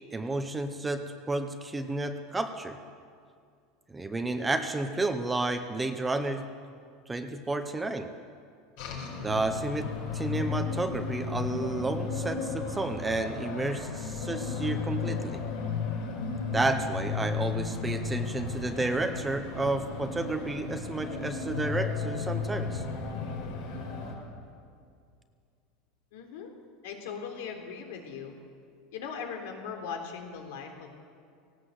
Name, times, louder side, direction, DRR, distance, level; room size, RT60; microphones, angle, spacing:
voice 1, 0.1-2.8 3.9-6.5 7.1-8.1 9.2-15.4 16.5-22.8, right 2 dB, 5° right, 7 dB, 0.7 m, -31 dB
sound 1, 8.8-24.1, left 5 dB, 55° left, 5.1 m, -34 dB
voice 2, 26.1-26.5 26.8-28.3 28.9-31.1, left 6 dB, 75° left, 3 dB, 3.7 m, -39 dB
18.5 x 18.0 x 8.0 m, 2.3 s
supercardioid pair, 180°, 0 cm